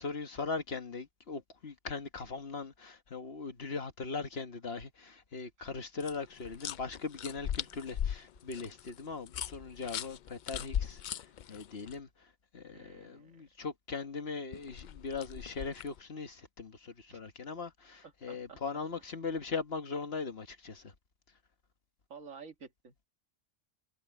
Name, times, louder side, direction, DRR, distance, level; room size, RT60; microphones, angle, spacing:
voice 1, 0.0-12.3 12.5-20.9, left 4 dB, 50° left, 1.5 m, -40 dB
sound 1, 6.0-11.9 14.5-16.0, left 9 dB, 80° left, 0.4 m, -39 dB
voice 2, 12.7-13.4 17.1-17.2 18.0-18.6 22.1-22.9, right 5 dB, 75° right, 2.1 m, -51 dB
omnidirectional pair, 1.3 m